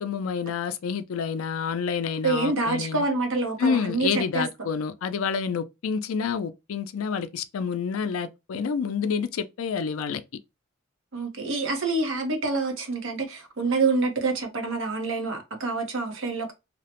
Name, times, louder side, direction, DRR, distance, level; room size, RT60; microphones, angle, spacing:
voice 1, 0.0-3.1 3.6-10.2, left 6 dB, 85° left, 0.4 m, -28 dB
voice 2, 2.2-4.5 11.1-16.5, right 3 dB, 65° right, 0.9 m, -27 dB
2.8 x 2.1 x 2.9 m
head